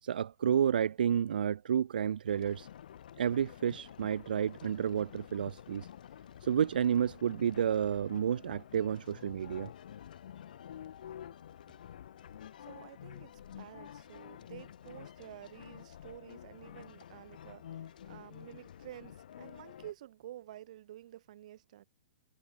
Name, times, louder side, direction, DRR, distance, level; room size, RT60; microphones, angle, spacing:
voice 1, 0.0-2.7 3.2-5.9 6.4-9.7, right 8 dB, 80° right, 1.4 m, -30 dB
sound 1, 2.3-19.9, left 10 dB, 65° left, 2.9 m, -50 dB
voice 2, 12.6-21.8, right 13 dB, 50° right, 7.4 m, -51 dB
hypercardioid pair, 165°, 5 cm